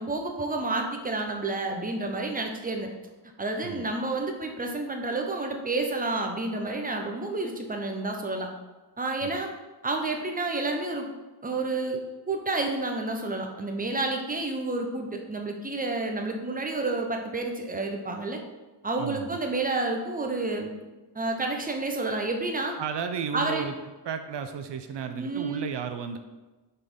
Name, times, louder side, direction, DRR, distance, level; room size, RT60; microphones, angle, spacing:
voice 1, 0.0-2.9 3.4-8.5 9.0-9.5 9.8-11.1 11.4-12.0 12.3-18.4 18.8-20.7 21.1-22.8 23.3-23.6 25.2-25.6, right 2 dB, 20° right, 3 dB, 0.8 m, -30 dB
voice 2, 19.0-19.4 22.8-23.7 24.0-26.2, right 7 dB, 75° right, 8 dB, 0.5 m, -33 dB
6.4 x 4.2 x 3.7 m, 1.2 s
wide cardioid pair, 100°, 42 cm